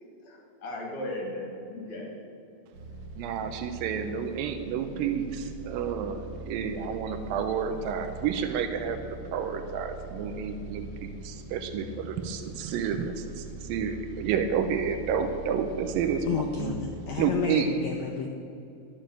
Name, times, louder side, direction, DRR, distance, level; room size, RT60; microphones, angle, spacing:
voice 1, 0.2-2.2, left 1 dB, 55° left, -2 dB, 3.2 m, -37 dB
sound 1, 2.7-17.3, right 3 dB, 65° right, 2.7 m, -42 dB
voice 2, 3.2-9.0 9.3-16.7 17.2-17.7, right 7 dB, 90° right, 7 dB, 2.4 m, -30 dB
voice 3, 16.3-18.3, left 7 dB, 85° left, 3 dB, 1.6 m, -31 dB
12.0 x 7.1 x 7.7 m, 2.7 s
omnidirectional pair, 4.0 m